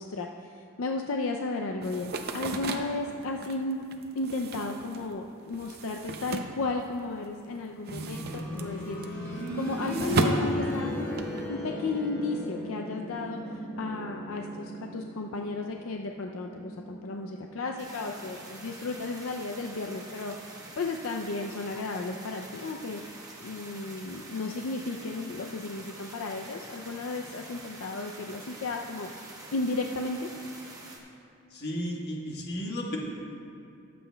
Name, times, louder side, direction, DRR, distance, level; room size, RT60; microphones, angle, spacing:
voice 1, 0.0-3.8 4.1-23.0 23.4-29.1 29.5-30.3, left 3 dB, 75° left, 2 dB, 0.5 m, -34 dB
sound 1, 1.8-7.3 7.6-11.5, right 2 dB, 45° right, 0.6 m, -34 dB
sound 2, 7.9-18.7 20.0-20.1, left 1 dB, 10° left, 1.9 m, -36 dB
sound 3, 17.8-31.0, right 2 dB, 15° right, 1.0 m, -46 dB
voice 2, 31.5-33.0, equal, 50° left, -2 dB, 1.4 m, -33 dB
21.0 x 7.7 x 2.2 m, 2.6 s
head